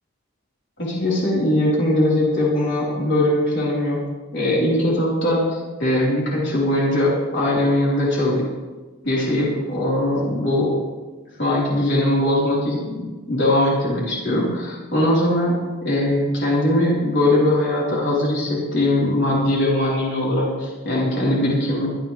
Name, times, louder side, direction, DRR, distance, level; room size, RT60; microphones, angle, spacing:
voice 1, 0.8-4.0 4.3-8.5 9.0-10.7 11.4-15.6 15.8-21.9, left 1 dB, 55° left, -6 dB, 4.7 m, -20 dB
24.0 x 11.0 x 3.5 m, 1.3 s
head